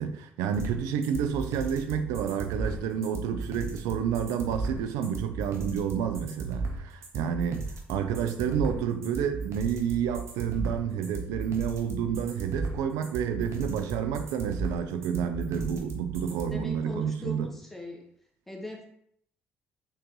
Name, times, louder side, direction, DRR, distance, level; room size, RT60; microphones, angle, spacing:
voice 1, 0.0-17.5, right 8 dB, 75° right, 0.4 m, -30 dB
sound 1, 0.5-16.5, right 4 dB, 55° right, 0.9 m, -35 dB
voice 2, 16.5-18.0 18.5-18.9, left 2 dB, 5° left, 1.2 m, -39 dB
3.9 x 2.7 x 3.7 m
hypercardioid pair, 50°, 6 cm